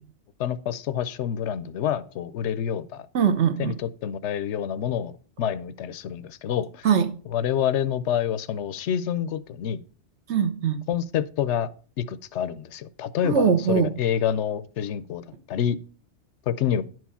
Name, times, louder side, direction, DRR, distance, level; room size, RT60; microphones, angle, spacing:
voice 1, 0.4-3.1 3.6-5.1 5.4-6.9 7.3-9.8 10.9-11.7 12.0-15.8 16.5-16.8, left 9 dB, 75° left, 0.9 m, -27 dB
voice 2, 3.1-3.8 6.8-7.2 10.3-10.8 13.2-13.9, right 7 dB, 70° right, 1.2 m, -21 dB
10.5 x 4.7 x 5.6 m
omnidirectional pair, 1.2 m